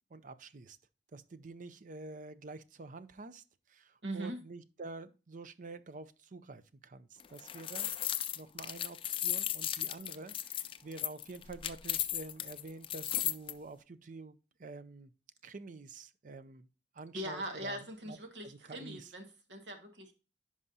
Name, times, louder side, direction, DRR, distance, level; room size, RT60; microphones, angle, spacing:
voice 1, 0.1-0.8 1.1-7.9 8.4-15.1 15.4-16.7 16.9-19.1, right 3 dB, 50° right, 0.5 m, -48 dB
voice 2, 4.0-4.4 17.1-20.1, right 1 dB, 85° right, 1.7 m, -41 dB
sound 1, 7.2-13.5, left 11 dB, 30° left, 0.4 m, -35 dB
11.0 x 4.9 x 2.8 m
head